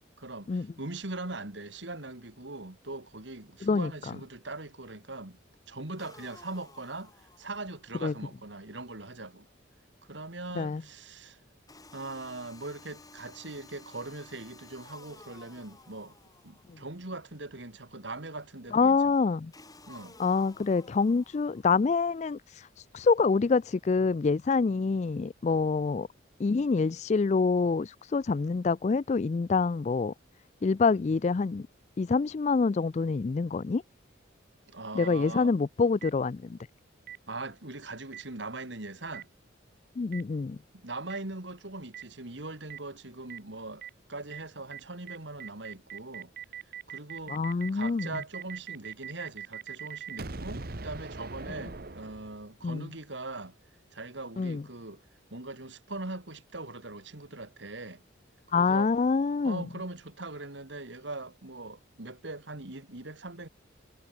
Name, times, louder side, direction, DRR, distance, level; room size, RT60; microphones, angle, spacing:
voice 1, 0.2-5.4 5.7-7.1 7.4-9.5 10.0-11.4 11.9-16.2 16.4-19.1 19.9-20.2 34.7-35.5 37.3-39.3 40.7-46.3 46.9-47.4 47.7-53.6 53.9-55.0 55.3-58.0 58.5-58.9 59.4-63.5, right 2 dB, 65° right, 2.5 m, -41 dB
sound 1, 6.0-7.9 11.7-17.0 19.5-21.9, left 3 dB, 20° left, 5.5 m, -54 dB
voice 2, 18.7-19.5 20.2-22.4 22.9-26.1 26.4-30.1 30.6-31.7 32.0-33.8 34.9-36.6 40.0-40.6 47.3-48.2 52.6-52.9 54.4-54.6 58.5-59.7, left 4 dB, 35° left, 0.3 m, -26 dB
Boom, 35.0-35.1 36.0-36.1 37.1-37.2 38.1-38.2 39.1-39.2 40.1-40.2 41.1-41.2 41.9-42.0 42.7-42.8 43.3-43.4 43.8-43.9 44.3-44.4 44.7-44.8 45.1-52.6, right 6 dB, 50° right, 1.2 m, -41 dB
head